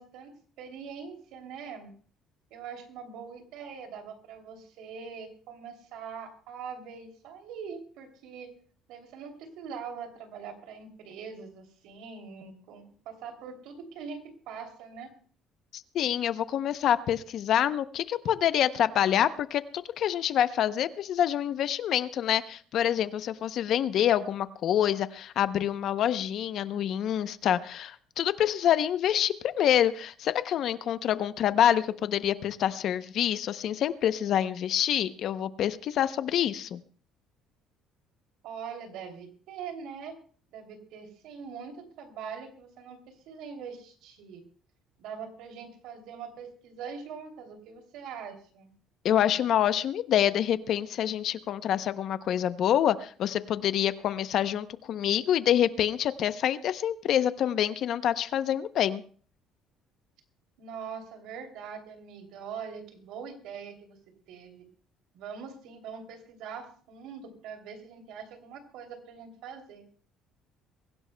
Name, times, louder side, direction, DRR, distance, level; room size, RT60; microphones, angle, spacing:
voice 1, 0.0-1.9 2.5-8.5 8.9-15.1 38.4-40.2 40.5-44.4 45.0-48.7 60.6-64.7 65.1-69.9, right 6 dB, 75° right, 4 dB, 2.9 m, -43 dB
voice 2, 15.7-36.8 49.0-59.0, left 10 dB, 50° left, 13 dB, 0.7 m, -26 dB
23.0 x 16.0 x 2.2 m, 0.44 s
cardioid pair, 160°, 0 cm